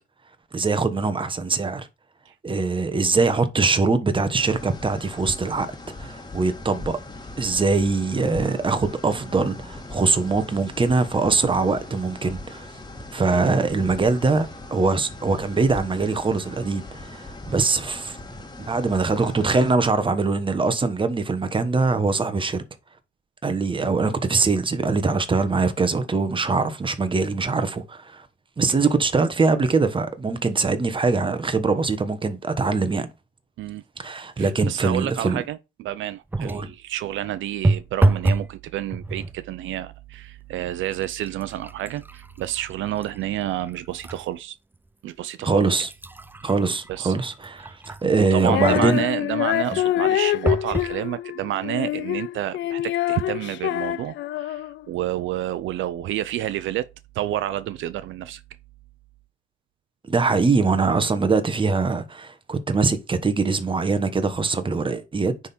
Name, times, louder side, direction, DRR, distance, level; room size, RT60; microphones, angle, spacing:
voice 1, 0.5-1.9 2.4-5.7 6.0-7.0 7.4-12.7 13.1-18.2 18.7-22.6 23.4-28.3 28.6-33.1 34.0-35.4 36.4-36.7 45.4-45.9 46.4-49.0 49.7-49.8 60.0-65.3, right 4 dB, 25° right, 1.2 m, -22 dB
sound 1, 4.4-19.8, left 2 dB, 20° left, 1.6 m, -40 dB
voice 2, 13.3-13.6 33.6-33.8 34.4-44.6 45.0-45.8 46.9-47.1 48.0-56.9 57.1-58.4, right 13 dB, 75° right, 0.5 m, -30 dB
sound 2, 36.3-36.8 37.6-38.5 38.9-39.4 40.1-40.3 40.7-44.2 44.7-44.8 45.5-48.2 50.5-51.0 51.7-51.8 52.0-52.1, right 2 dB, 10° right, 0.4 m, -27 dB
Female singing, 48.4-54.8, left 13 dB, 70° left, 0.4 m, -25 dB
9.6 x 3.6 x 4.3 m
cardioid pair, 90°, 20 cm